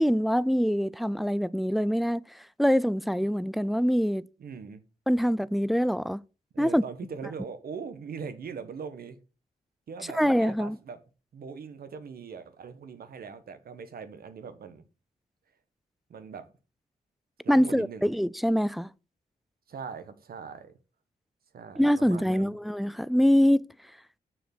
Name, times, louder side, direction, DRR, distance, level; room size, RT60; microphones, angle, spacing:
voice 1, 0.0-2.2 2.6-4.2 5.1-6.2 6.6-6.8 10.1-10.8 17.5-18.9 21.8-23.7, equal, ahead, 0.4 m, -24 dB
voice 2, 4.4-4.8 6.5-9.2 9.9-11.0 11.3-14.8 16.1-16.5 17.4-18.1 19.7-20.7 21.5-22.6, right 6 dB, 70° right, 1.4 m, -41 dB
7.2 x 6.4 x 6.0 m
cardioid pair, 100°, 16 cm